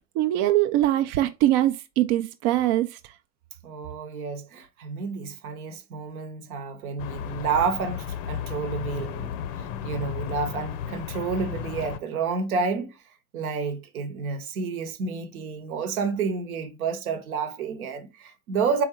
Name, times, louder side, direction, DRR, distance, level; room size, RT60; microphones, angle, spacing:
voice 1, 0.2-2.9, right 14 dB, 50° right, 0.5 m, -22 dB
voice 2, 3.6-12.9 13.3-18.8, right 5 dB, 75° right, 1.0 m, -30 dB
sound 1, 7.0-12.0, left 8 dB, 60° left, 0.7 m, -34 dB
3.9 x 3.9 x 2.9 m
hypercardioid pair, 80°, 44 cm